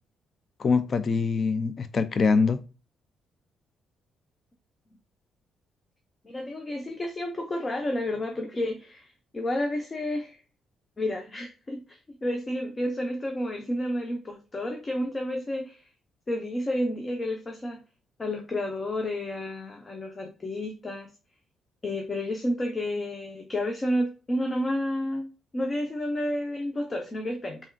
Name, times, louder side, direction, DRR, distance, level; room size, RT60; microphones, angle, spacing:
voice 1, 0.6-2.6, left 4 dB, 45° left, 0.4 m, -24 dB
voice 2, 6.2-10.4 11.0-15.9 16.3-17.8 18.2-21.1 21.8-27.6, left 1 dB, 30° left, 0.8 m, -31 dB
4.2 x 3.5 x 2.3 m
cardioid pair, 90°, 0 cm